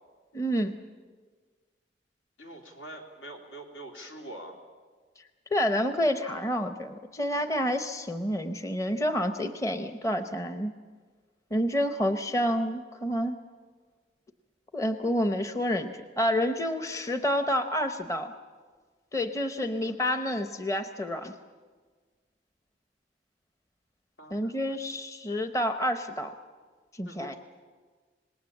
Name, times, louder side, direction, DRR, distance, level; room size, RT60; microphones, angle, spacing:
voice 1, 0.3-0.7 5.5-10.7 11.5-13.4 14.7-18.3 19.1-21.3 24.3-26.3 26.9-27.4, equal, 15° left, 8 dB, 0.8 m, -29 dB
voice 2, 2.4-4.6 24.2-24.8 27.0-27.4, right 1 dB, 85° left, 1 dB, 3.4 m, -44 dB
26.5 x 20.0 x 7.3 m, 1.5 s
head